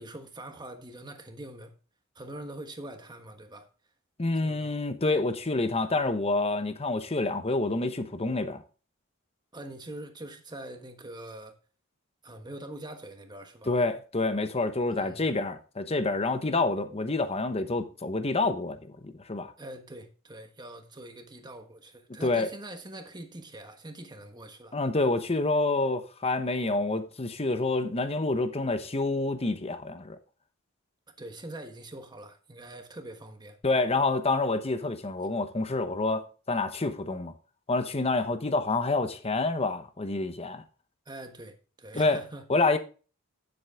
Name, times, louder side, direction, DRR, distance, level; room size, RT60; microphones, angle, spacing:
voice 1, 0.0-1.7 2.1-3.7 4.4-4.7 9.5-11.6 12.2-13.7 14.9-15.3 19.6-24.8 31.2-33.6 41.1-42.4, right 1 dB, 20° right, 1.3 m, -43 dB
voice 2, 4.2-8.6 13.7-19.5 22.2-22.5 24.7-30.2 33.6-37.3 37.7-40.6 41.9-42.2 42.5-42.8, left 3 dB, 30° left, 0.9 m, -28 dB
9.5 x 7.9 x 3.6 m
head